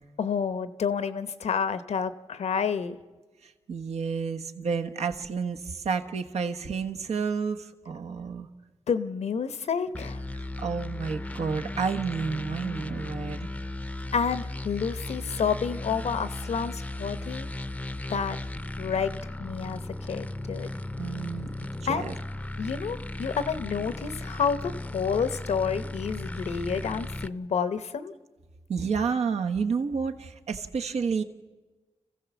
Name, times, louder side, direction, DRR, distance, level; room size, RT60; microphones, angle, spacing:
voice 1, 0.2-3.0 8.9-10.2 14.1-17.5 18.1-18.4 18.8-20.7 21.9-22.1 22.6-28.1, left 6 dB, 85° left, 12 dB, 0.9 m, -29 dB
voice 2, 3.4-8.5 10.4-13.5 21.0-21.5 21.9-22.2 28.7-31.2, right 5 dB, 85° right, 5 dB, 1.1 m, -30 dB
sound 1, 9.9-27.3, left 2 dB, 10° left, 0.6 m, -36 dB
26.5 x 15.5 x 7.2 m, 1.3 s
cardioid pair, 75°, 11 cm